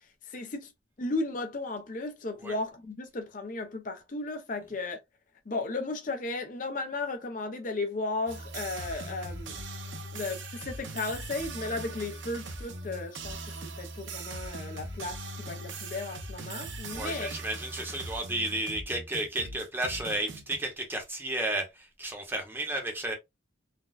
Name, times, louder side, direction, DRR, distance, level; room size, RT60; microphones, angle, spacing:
voice 1, 0.3-0.7 1.0-5.0 5.5-9.6 10.1-17.3, left 3 dB, 45° left, 0.6 m, -35 dB
sound 1, 8.3-20.6, right 2 dB, 90° right, 0.8 m, -40 dB
voice 2, 16.9-23.1, right 1 dB, 10° right, 0.8 m, -33 dB
4.1 x 2.2 x 2.3 m
head